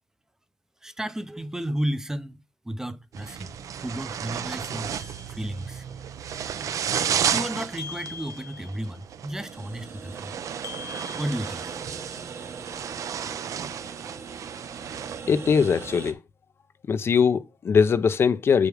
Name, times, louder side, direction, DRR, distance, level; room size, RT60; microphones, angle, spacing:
voice 1, 0.8-2.4 2.6-3.5 3.8-5.9 7.0-10.3 11.2-11.7, right 1 dB, 10° right, 0.5 m, -33 dB
sound 1, 3.1-15.2, right 8 dB, 75° right, 0.6 m, -33 dB
sound 2, 4.9-5.9 7.8-9.0 10.6-12.1, left 5 dB, 75° left, 1.2 m, -43 dB
sound 3, 9.4-16.1, right 5 dB, 55° right, 1.1 m, -40 dB
voice 2, 15.3-16.2 16.9-18.7, left 6 dB, 45° left, 0.5 m, -21 dB
8.1 x 4.9 x 4.7 m
wide cardioid pair, 160°, 6 cm